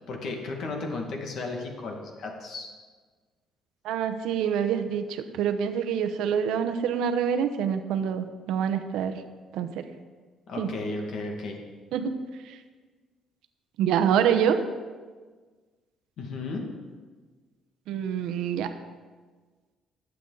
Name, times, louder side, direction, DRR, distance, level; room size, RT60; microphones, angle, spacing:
voice 1, 0.1-2.7 10.5-11.6 16.2-16.7, left 3 dB, 60° left, 2 dB, 2.0 m, -34 dB
voice 2, 3.8-9.2 9.5-9.8 10.6-10.7 11.9-12.2 13.8-14.6 17.9-18.7, right 8 dB, 85° right, 9 dB, 0.9 m, -26 dB
19.5 x 8.2 x 4.0 m, 1.4 s
cardioid pair, 135°, 0 cm